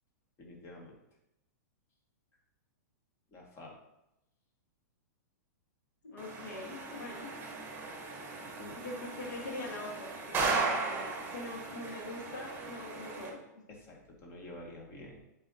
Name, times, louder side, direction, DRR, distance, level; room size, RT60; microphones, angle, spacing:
voice 1, 0.4-0.9 3.3-3.8 8.4-8.8 13.7-15.2, left 1 dB, 30° left, -2 dB, 1.8 m, -49 dB
voice 2, 6.0-7.3 8.8-13.4, left 2 dB, 85° left, -1 dB, 1.5 m, -43 dB
sound 1, 6.2-13.3, right 4 dB, 20° right, 1.1 m, -37 dB
8.5 x 4.3 x 2.8 m, 0.88 s
hypercardioid pair, 130°, 10 cm